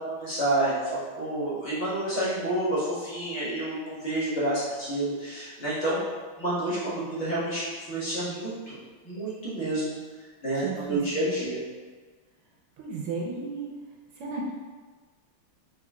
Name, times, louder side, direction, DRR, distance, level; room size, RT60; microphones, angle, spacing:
voice 1, 0.0-6.0 6.4-8.8 9.0-10.0 10.4-11.6, right 1 dB, 35° left, -10 dB, 1.6 m, -29 dB
voice 2, 10.5-11.3 12.8-13.7 14.2-14.5, right 4 dB, 85° right, -3 dB, 1.6 m, -34 dB
4.7 x 3.7 x 2.4 m, 1.4 s
omnidirectional pair, 2.4 m